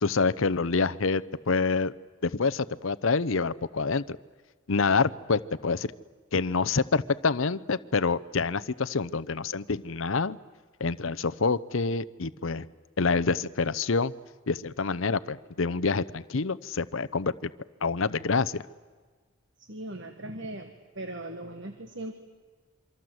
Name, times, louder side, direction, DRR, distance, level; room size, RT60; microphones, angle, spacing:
voice 1, 0.0-1.9 2.2-4.2 4.7-5.9 6.3-10.4 10.8-12.7 13.0-14.1 14.5-17.5 17.8-18.6, left 4 dB, 65° left, 16 dB, 0.8 m, -27 dB
voice 2, 19.7-22.1, right 1 dB, 55° right, 7 dB, 1.7 m, -39 dB
27.5 x 25.0 x 7.9 m, 1.4 s
head